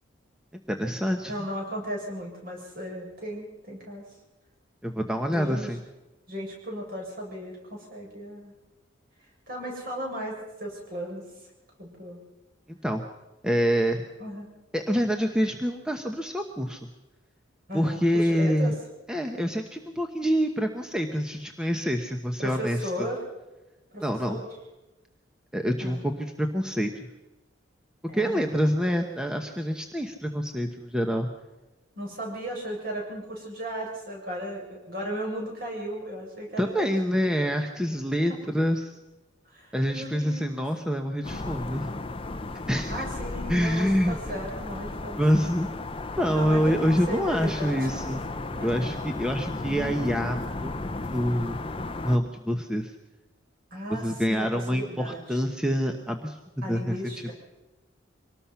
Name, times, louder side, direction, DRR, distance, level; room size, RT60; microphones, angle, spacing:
voice 1, 0.7-1.3 4.8-5.8 12.7-13.0 13.4-14.0 14.7-16.8 17.7-18.8 19.1-23.1 24.0-24.4 25.5-27.1 28.1-31.3 36.6-38.9 39.7-41.9 42.7-43.1 43.5-44.2 45.2-45.7 46.2-48.2 48.6-51.6 52.0-52.9 54.0-56.4 56.7-57.0, equal, 5° right, 4 dB, 1.0 m, -26 dB
voice 2, 1.2-4.0 5.3-5.7 6.3-8.5 9.5-11.2 11.8-12.2 14.2-14.5 17.7-18.7 22.4-23.2 23.9-24.5 25.8-26.0 28.1-28.5 32.0-36.9 39.4-40.6 42.9-45.4 46.3-47.9 48.5-48.9 53.7-55.4 56.6-57.3, equal, 50° right, -1 dB, 7.5 m, -36 dB
sound 1, 41.2-52.2, left 2 dB, 25° left, 0.7 m, -34 dB
24.5 x 19.0 x 5.8 m, 1.1 s
head